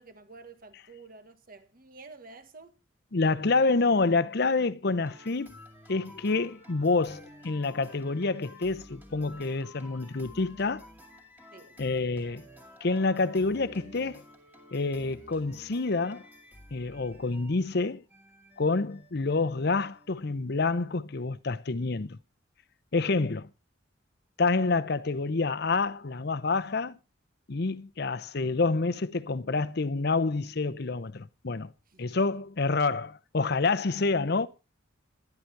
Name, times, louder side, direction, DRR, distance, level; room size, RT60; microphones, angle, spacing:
voice 1, 0.0-2.8 11.5-11.8 31.9-32.0, right 3 dB, 45° right, 1.5 m, -50 dB
voice 2, 3.1-5.6 5.9-10.9 11.8-12.4 12.8-14.2 14.7-16.2 16.7-18.0 18.6-22.2 22.9-23.5 24.4-27.0 27.5-31.7 32.0-34.5, left 3 dB, 55° left, 0.7 m, -28 dB
sound 1, 5.0-20.1, left 1 dB, 10° right, 2.2 m, -52 dB
12.0 x 11.5 x 4.6 m
head